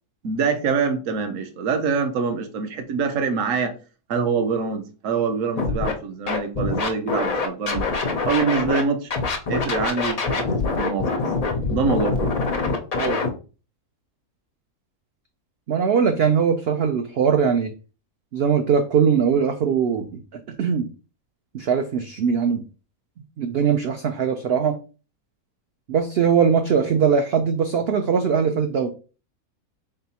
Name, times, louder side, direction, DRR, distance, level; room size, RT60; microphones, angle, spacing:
voice 1, 0.2-3.7 4.1-7.9 8.3-9.1 9.5-10.5 10.8-11.2 11.7-12.4, right 5 dB, 65° right, 1.0 m, -24 dB
Scratching (performance technique), 5.6-5.9 6.3-8.8 9.1-13.3, left 4 dB, 80° left, 0.3 m, -24 dB
voice 2, 15.7-17.7 18.3-20.1 20.6-20.9 21.5-22.6 23.4-24.8 25.9-28.9, right 6 dB, 80° right, 0.5 m, -21 dB
3.9 x 3.7 x 2.8 m
omnidirectional pair, 1.6 m